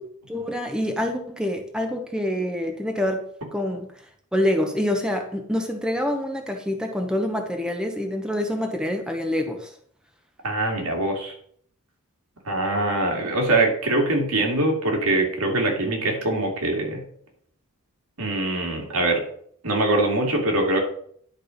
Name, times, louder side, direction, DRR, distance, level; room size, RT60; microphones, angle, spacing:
voice 1, 0.3-3.2 3.5-3.9 4.3-9.7, left 1 dB, 5° right, 3 dB, 0.9 m, -26 dB
voice 2, 10.4-11.3 12.5-17.0 18.2-19.2 19.6-20.8, right 2 dB, 85° right, 1 dB, 2.2 m, -23 dB
10.5 x 4.4 x 5.1 m, 0.62 s
head